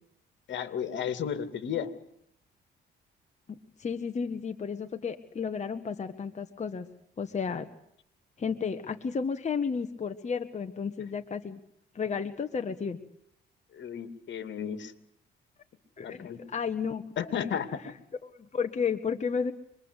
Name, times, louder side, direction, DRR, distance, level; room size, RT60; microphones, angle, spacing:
voice 1, 0.5-1.9 13.7-14.9 16.0-16.4 17.2-17.7, left 8 dB, 65° left, 12 dB, 2.6 m, -33 dB
voice 2, 3.5-6.9 7.2-7.7 8.4-11.6 11.9-13.0 16.0-17.0 18.2-19.5, left 6 dB, 35° left, 7 dB, 1.5 m, -32 dB
26.0 x 22.0 x 8.2 m, 0.72 s
cardioid pair, 90°, 20 cm